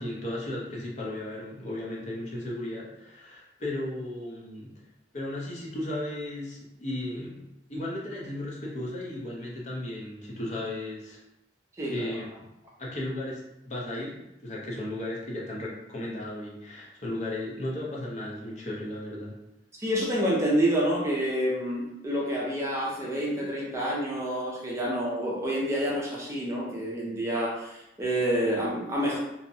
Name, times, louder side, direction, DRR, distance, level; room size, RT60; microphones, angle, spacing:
voice 1, 0.0-4.8 5.1-11.2 11.8-12.3 12.8-19.4, left 1 dB, 40° left, -4 dB, 0.6 m, -35 dB
voice 2, 11.8-12.1 19.8-29.2, equal, 15° right, -4 dB, 0.5 m, -28 dB
2.6 x 2.1 x 2.6 m, 0.87 s
head